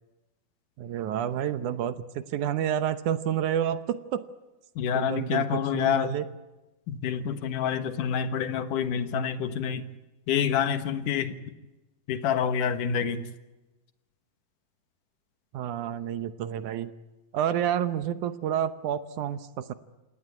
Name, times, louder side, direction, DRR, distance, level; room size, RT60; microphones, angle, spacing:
voice 1, 0.8-4.2 4.9-6.2 15.5-16.9 17.3-19.7, right 10 dB, 70° right, 13 dB, 2.1 m, -29 dB
voice 2, 4.8-6.2 6.9-9.8 10.3-11.3 12.1-13.3, left 8 dB, 65° left, 11 dB, 2.8 m, -27 dB
27.0 x 18.5 x 9.7 m, 1.1 s
omnidirectional pair, 4.3 m